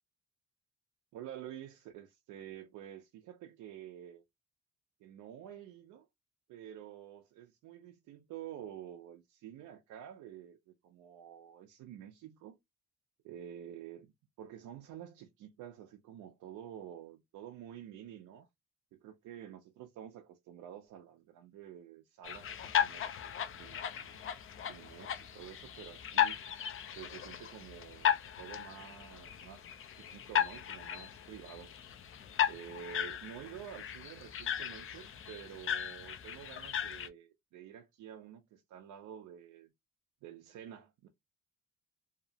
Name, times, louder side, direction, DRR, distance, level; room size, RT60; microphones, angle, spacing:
voice 1, 1.1-4.2 5.0-6.1 6.5-12.6 13.2-18.5 18.9-24.2 24.7-26.4 26.9-29.7 30.0-31.7 32.5-39.7 40.2-41.1, right 10 dB, 80° right, 0.5 m, -49 dB
sound 1, 22.2-37.1, left 9 dB, 45° left, 0.5 m, -36 dB
2.7 x 2.0 x 2.7 m
cardioid pair, 90°, 30 cm